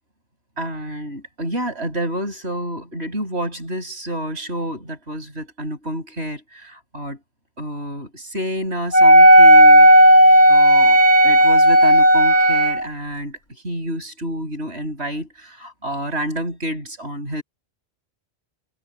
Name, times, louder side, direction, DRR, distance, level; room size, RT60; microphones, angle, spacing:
voice 1, 0.6-7.2 7.6-9.9 10.5-11.0 11.2-17.4, equal, 80° right, 8.0 m, -29 dB
Wind instrument woodwind instrument, 8.9-12.8, equal, 45° left, 3.4 m, -11 dB
omnidirectional pair, 1.1 m